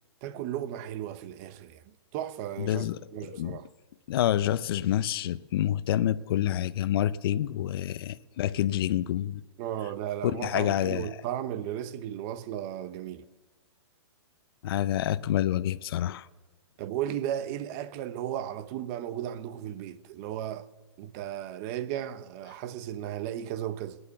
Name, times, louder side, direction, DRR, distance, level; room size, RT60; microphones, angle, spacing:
voice 1, 0.2-2.8 3.1-3.7 9.6-13.2 16.8-20.7 21.0-24.0, right 11 dB, 35° right, 0.8 m, -35 dB
voice 2, 2.6-3.0 3.3-3.6 4.1-9.4 10.2-11.1 14.6-16.3, left 12 dB, 55° left, 0.6 m, -28 dB
18.5 x 9.8 x 6.9 m
hypercardioid pair, 145°, 15 cm